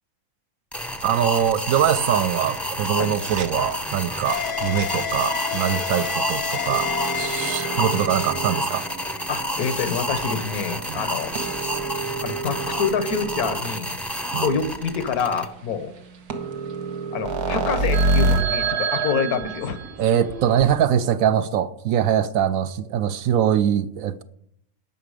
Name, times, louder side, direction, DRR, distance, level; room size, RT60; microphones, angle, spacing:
sound 1, 0.7-15.4, equal, ahead, 0.5 m, -30 dB
voice 1, 1.0-6.9 7.2-8.8 10.9-11.0 14.3-14.6 20.0-24.2, right 9 dB, 70° right, 0.9 m, -23 dB
sound 2, 1.8-13.7 14.3-14.4 14.6-14.7 15.0-15.1 16.0-16.1 16.3-20.7, right 3 dB, 90° right, 1.7 m, -29 dB
sound 3, 4.3-9.6, left 10 dB, 55° left, 0.6 m, -31 dB
voice 2, 9.3-11.3 12.2-14.0 14.4-15.9 17.1-19.8, left 6 dB, 80° left, 1.5 m, -26 dB
17.5 x 5.9 x 4.9 m
omnidirectional pair, 1.6 m